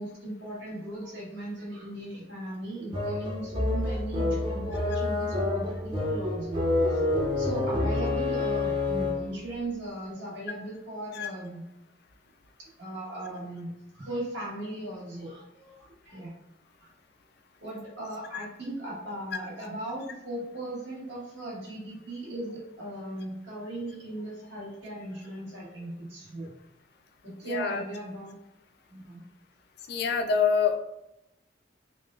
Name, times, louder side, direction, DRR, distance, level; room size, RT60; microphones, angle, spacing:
voice 1, 0.0-7.0 7.3-11.6 12.6-16.3 16.8-16.9 17.6-26.5 27.2-28.3 28.9-29.2, right 1 dB, 75° right, -5 dB, 1.4 m, -38 dB
sound 1, 2.9-9.4, left 2 dB, 30° right, 0.6 m, -28 dB
voice 2, 27.4-27.8 29.9-30.8, left 5 dB, 60° left, 6 dB, 0.4 m, -26 dB
3.6 x 2.2 x 2.3 m, 0.89 s
head